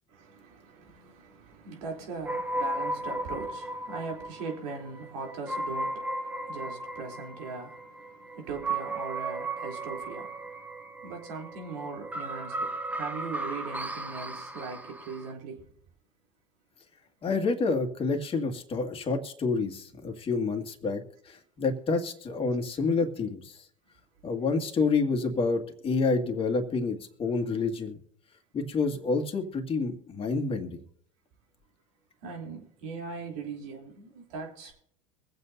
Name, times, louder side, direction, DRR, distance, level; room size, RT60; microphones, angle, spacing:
voice 1, 0.1-15.7 32.2-34.7, right 4 dB, 70° right, 3.4 m, -40 dB
sound 1, 2.2-15.3, right 2 dB, 10° right, 1.1 m, -35 dB
voice 2, 17.2-23.7 24.2-28.0 28.5-30.8, left 4 dB, 35° left, 2.1 m, -28 dB
23.5 x 7.9 x 2.7 m
hypercardioid pair, 90°, 17 cm